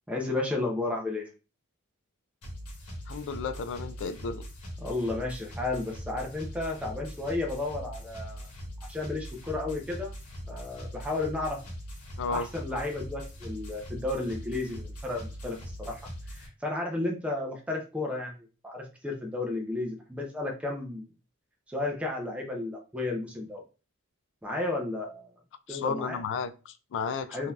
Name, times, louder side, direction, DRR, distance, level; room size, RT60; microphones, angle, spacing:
voice 1, 0.1-1.3 4.8-8.5 8.9-10.1 10.5-11.6 12.3-21.0 21.7-23.6 24.4-25.3 25.7-26.2 27.3-27.5, left 2 dB, 5° right, 0.6 m, -33 dB
sound 1, 2.4-16.5, equal, 80° left, 1.2 m, -41 dB
voice 2, 3.1-4.4 12.2-12.5 25.7-27.5, left 5 dB, 55° left, 0.3 m, -33 dB
3.8 x 2.7 x 2.3 m
head